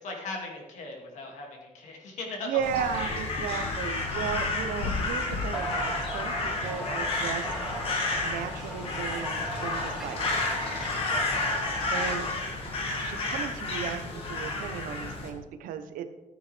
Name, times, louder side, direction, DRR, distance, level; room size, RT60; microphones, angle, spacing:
voice 1, 0.0-2.5 3.0-3.2 11.1-11.4, left 3 dB, 60° left, 0 dB, 2.4 m, -39 dB
voice 2, 2.4-7.5 8.2-10.4 11.9-12.3 13.0-16.1, right 8 dB, 90° right, 9 dB, 0.9 m, -35 dB
sound 1, 2.6-15.1, left 4 dB, 75° left, 1.3 m, -41 dB
Crow, 2.6-15.3, left 2 dB, 40° left, 1.9 m, -31 dB
sound 2, 4.6-12.3, right 1 dB, ahead, 2.0 m, -39 dB
14.0 x 9.0 x 3.4 m, 1.1 s
cardioid pair, 165°, 14 cm